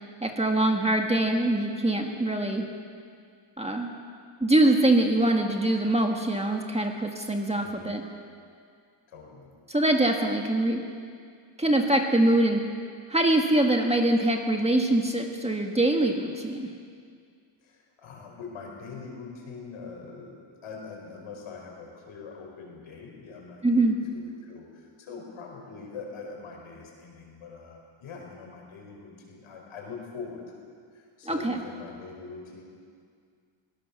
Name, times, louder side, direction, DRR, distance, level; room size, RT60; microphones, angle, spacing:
voice 1, 0.2-2.7 3.6-3.9 4.4-8.0 9.7-10.8 11.6-12.6 13.1-16.7 23.6-24.0 31.3-31.6, right 1 dB, 15° right, 2 dB, 1.6 m, -23 dB
voice 2, 7.6-8.0 9.1-9.5 17.6-32.6, left 4 dB, 80° left, 0 dB, 5.3 m, -43 dB
22.0 x 17.5 x 7.0 m, 2.2 s
wide cardioid pair, 140°, 49 cm